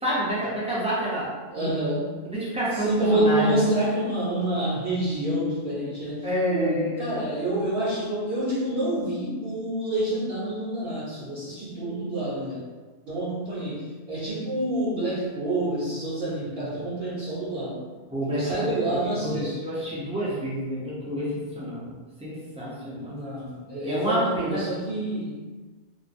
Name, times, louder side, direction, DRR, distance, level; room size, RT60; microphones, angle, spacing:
voice 1, 0.0-1.7 2.2-3.7 6.2-7.0 18.1-23.1 23.8-24.6, equal, 10° right, -9 dB, 0.4 m, -29 dB
voice 2, 1.5-2.2 2.8-12.6 13.1-17.8 18.3-19.6 23.1-25.4, right 1 dB, 55° right, -10 dB, 0.8 m, -27 dB
2.4 x 2.2 x 2.5 m, 1.4 s
omnidirectional pair, 1.2 m